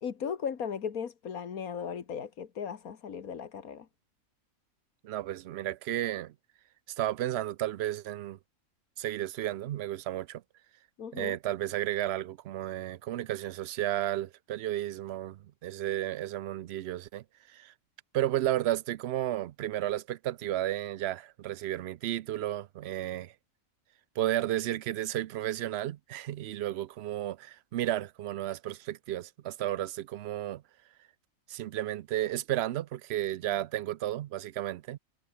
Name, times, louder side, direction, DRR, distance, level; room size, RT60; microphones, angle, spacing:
voice 1, 0.0-3.9 11.0-11.4, left 7 dB, 85° left, 2.0 m, -37 dB
voice 2, 5.0-6.3 7.0-8.4 9.0-10.4 11.1-17.7 18.1-23.3 24.2-30.6 31.5-35.0, right 13 dB, 65° right, 0.7 m, -33 dB
omnidirectional pair, 1.5 m